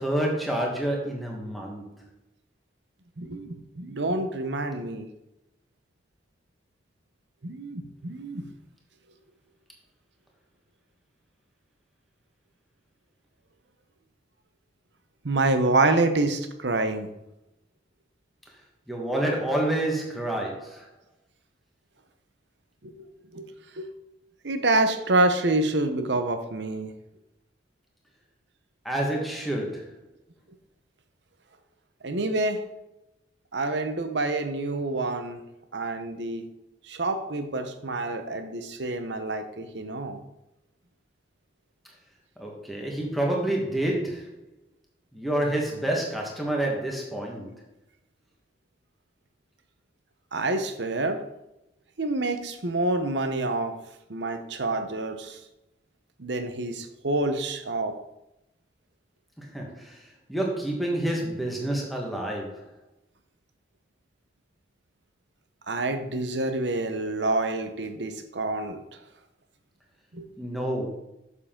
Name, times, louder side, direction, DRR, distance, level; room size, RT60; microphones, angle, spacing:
voice 1, 0.0-1.9 8.4-8.5 18.9-20.8 28.8-29.9 42.4-44.3 45.1-47.5 59.4-62.7 70.4-70.9, right 1 dB, ahead, -1 dB, 1.4 m, -28 dB
voice 2, 3.2-5.1 7.4-8.5 15.2-17.1 22.8-22.9 23.3-23.5 23.8-23.9 24.4-26.9 32.0-32.6 33.5-35.4 35.7-36.4 36.9-40.2 50.3-51.2 52.0-53.8 54.1-55.4 56.2-57.9 65.7-68.8 70.1-70.3, right 2 dB, 75° right, 8 dB, 0.9 m, -27 dB
7.2 x 6.7 x 3.8 m, 0.90 s
head